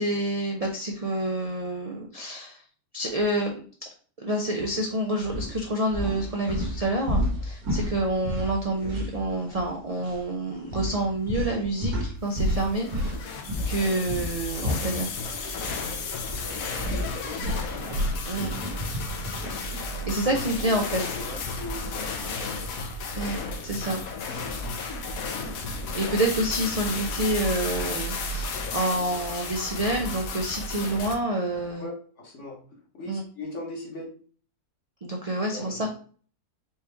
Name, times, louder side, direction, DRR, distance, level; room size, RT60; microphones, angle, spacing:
voice 1, 0.0-2.6 2.9-3.6 4.2-12.9 13.7-15.1 18.3-18.5 20.0-21.0 23.2-24.0 25.9-31.8 33.1-33.2 35.0-35.9, right 1 dB, 55° right, 0 dB, 0.4 m, -28 dB
sound 1, 4.6-4.8 5.2-9.7 10.0-10.2 10.7-15.8 16.1-19.6, equal, 85° right, 1.5 m, -31 dB
voice 2, 8.6-9.0 14.8-15.0 16.4-17.8 20.3-22.7 31.8-32.6 32.9-34.1 35.5-35.9, left 2 dB, 55° left, -1 dB, 1.6 m, -40 dB
sound 2, 12.4-31.2, left 3 dB, 70° left, 1.1 m, -33 dB
4.6 x 3.1 x 3.3 m, 0.43 s
omnidirectional pair, 1.6 m